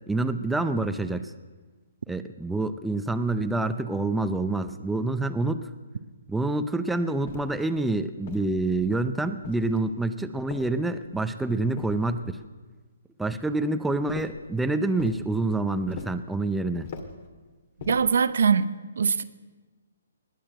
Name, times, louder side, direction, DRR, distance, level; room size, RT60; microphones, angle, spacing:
voice 1, 0.1-1.3 2.1-5.7 6.3-12.4 13.2-16.9, right 2 dB, 5° right, 0.5 m, -27 dB
sound 1, 7.3-7.7 8.3-8.9 9.4-10.0 10.5-11.2 11.8-12.5 14.1-14.5 15.0-15.3 15.9-16.3 16.8-17.3 17.8-18.2, left 5 dB, 45° left, 2.0 m, -41 dB
voice 2, 17.9-19.2, right 6 dB, 70° right, 0.8 m, -22 dB
20.0 x 8.5 x 7.8 m
hypercardioid pair, 150°, 0 cm